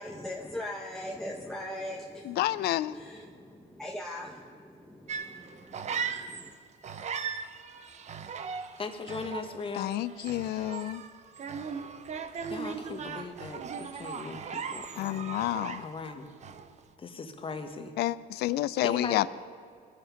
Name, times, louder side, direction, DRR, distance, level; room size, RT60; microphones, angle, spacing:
voice 1, 0.0-6.5, left 1 dB, 5° left, -1 dB, 1.0 m, -41 dB
voice 2, 2.3-3.0 9.7-11.0 15.0-15.9 18.0-19.3, left 15 dB, 75° left, 18 dB, 0.5 m, -29 dB
sound 1, 5.1-6.5 6.8-16.1 16.4-16.8, right 6 dB, 45° right, 0.8 m, -38 dB
voice 3, 8.8-9.9 12.5-15.3 15.8-16.3 17.0-17.9 18.8-19.2, left 4 dB, 30° left, 6 dB, 1.4 m, -38 dB
20.5 x 7.5 x 5.2 m, 2.2 s
cardioid pair, 110°, 17 cm